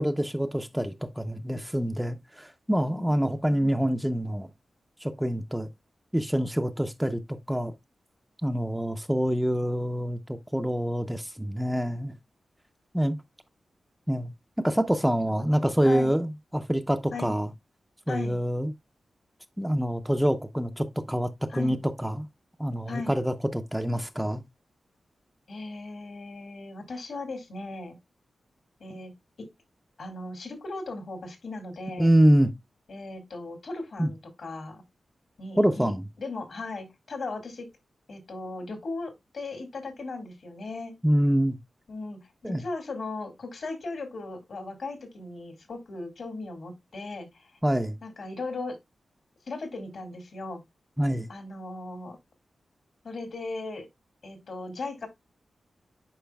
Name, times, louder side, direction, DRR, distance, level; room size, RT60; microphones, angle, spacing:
voice 1, 0.0-4.5 5.0-5.7 6.1-7.7 8.4-10.2 10.5-12.1 12.9-13.1 14.1-14.3 14.6-17.5 18.1-18.7 19.6-22.2 22.6-24.4 32.0-32.5 34.0-34.1 35.6-36.1 41.0-41.6 42.4-42.6 47.6-48.0 51.0-51.3, equal, 5° right, 0.5 m, -26 dB
voice 2, 18.1-18.4 21.5-21.8 22.9-23.2 25.5-28.0 28.8-29.1 29.4-29.5 30.0-32.1 32.9-34.8 35.4-35.9 36.2-37.7 38.1-40.9 41.9-47.5 48.0-48.8 49.5-50.6 51.3-52.2 53.0-53.9 54.2-55.1, left 3 dB, 65° left, 2.2 m, -37 dB
10.0 x 4.9 x 2.2 m
wide cardioid pair, 105°, 0 cm